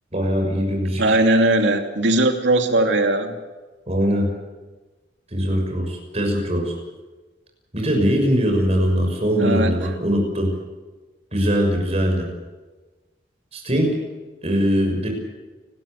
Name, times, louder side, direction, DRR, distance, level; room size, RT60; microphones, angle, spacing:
voice 1, 0.1-1.2 3.9-4.3 5.3-6.7 7.7-10.5 11.3-12.3 13.5-13.9 14.4-15.1, equal, 35° right, 2 dB, 6.4 m, -21 dB
voice 2, 1.0-3.4 9.4-9.8, right 2 dB, 85° right, 4 dB, 2.8 m, -19 dB
29.5 x 13.5 x 8.4 m, 1.2 s
head